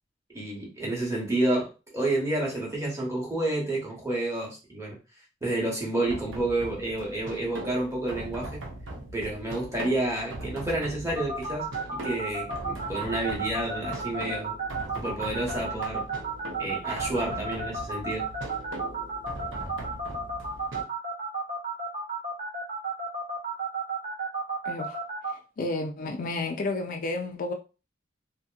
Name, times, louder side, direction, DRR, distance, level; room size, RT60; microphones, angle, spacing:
voice 1, 0.3-5.0 5.4-8.6 9.1-14.5 14.9-16.1 16.6-18.3, right 2 dB, 15° right, 1.0 m, -30 dB
sound 1, 6.0-20.8, right 1 dB, 90° right, 0.8 m, -40 dB
sound 2, 11.1-25.3, right 3 dB, 40° right, 0.8 m, -32 dB
voice 2, 24.6-27.5, left 2 dB, 45° left, 0.3 m, -32 dB
2.7 x 2.6 x 2.3 m
head